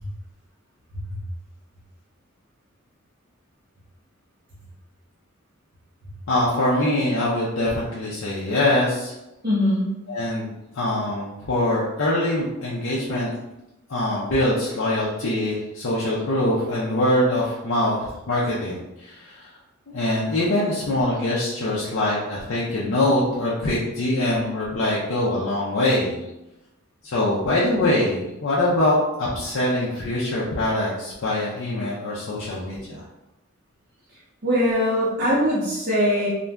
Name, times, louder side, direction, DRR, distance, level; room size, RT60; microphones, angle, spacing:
voice 1, 6.3-9.1 10.1-13.3 13.9-19.6 19.9-26.2 27.0-33.0, left 1 dB, 65° left, -7 dB, 0.5 m, -23 dB
voice 2, 9.4-9.9 34.4-36.3, equal, 40° right, -8 dB, 0.6 m, -21 dB
2.5 x 2.2 x 3.3 m, 0.94 s
head